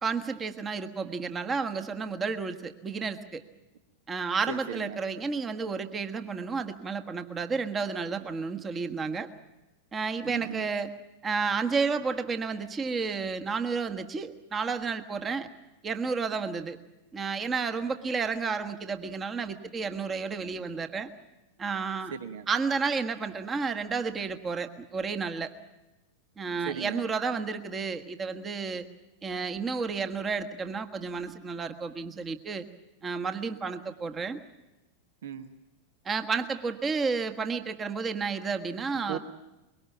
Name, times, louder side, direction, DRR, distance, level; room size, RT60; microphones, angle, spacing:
voice 1, 0.0-3.4 4.1-9.3 9.9-10.9 11.2-15.5 15.8-16.8 17.1-21.1 21.6-22.1 22.5-25.5 26.4-28.9 29.2-32.6 33.0-34.4 36.0-39.2, right 5 dB, 20° right, 8 dB, 1.4 m, -31 dB
voice 2, 4.5-5.0 10.3-10.6 22.1-22.5 26.6-27.0 35.2-35.5 39.1-39.2, right 8 dB, 60° right, 10 dB, 1.2 m, -36 dB
23.5 x 22.5 x 7.1 m, 1.0 s
figure-of-eight pair, 90°, 0 cm